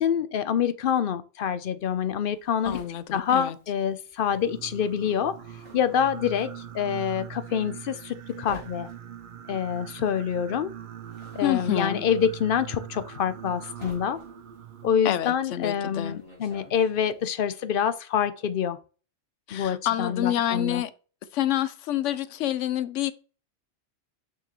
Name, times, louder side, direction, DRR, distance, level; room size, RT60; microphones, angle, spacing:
voice 1, 0.0-2.8 3.1-5.3 5.7-8.9 9.5-10.7 11.3-14.2 14.8-18.8 19.5-20.8, left 8 dB, 55° left, 0.7 m, -26 dB
sound 1, 1.8-4.3 4.6-17.2, equal, 20° left, 3.3 m, -50 dB
voice 2, 2.7-3.6 11.4-12.0 15.0-16.2 19.5-20.9 21.3-23.1, left 11 dB, 75° left, 0.9 m, -27 dB
Singing, 4.2-14.9, right 9 dB, 55° right, 0.6 m, -42 dB
6.7 x 6.2 x 3.0 m
omnidirectional pair, 1.3 m